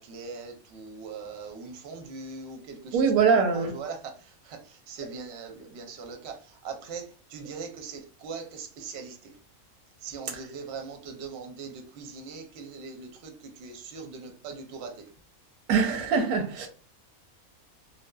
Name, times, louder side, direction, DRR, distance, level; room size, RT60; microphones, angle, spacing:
voice 1, 0.0-4.0 4.5-4.6 4.9-6.3 6.6-7.0 7.3-9.2 10.0-13.3 13.6-14.9, right 5 dB, 60° right, 0.8 m, -40 dB
voice 2, 2.9-3.7 10.3-10.4 15.7-16.7, right 5 dB, 90° right, 1.1 m, -23 dB
2.6 x 2.1 x 2.2 m
omnidirectional pair, 1.5 m